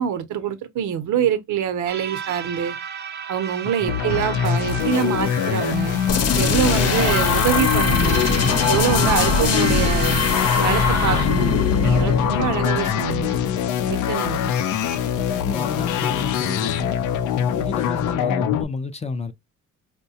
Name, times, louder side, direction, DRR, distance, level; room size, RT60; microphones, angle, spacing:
voice 1, 0.0-2.8 3.3-6.0 6.4-8.3 8.7-10.2 10.6-13.4 13.9-14.5, right 9 dB, 75° right, 0.7 m, -25 dB
sound 1, 1.9-11.3, right 7 dB, 35° right, 0.4 m, -32 dB
sound 2, 3.9-18.6, left 9 dB, 85° left, 0.5 m, -23 dB
sound 3, 6.1-13.7, left 4 dB, 55° left, 0.8 m, -22 dB
voice 2, 15.3-16.9 17.5-19.3, left 4 dB, 20° left, 0.4 m, -30 dB
4.5 x 2.2 x 2.7 m
cardioid pair, 90°, 30 cm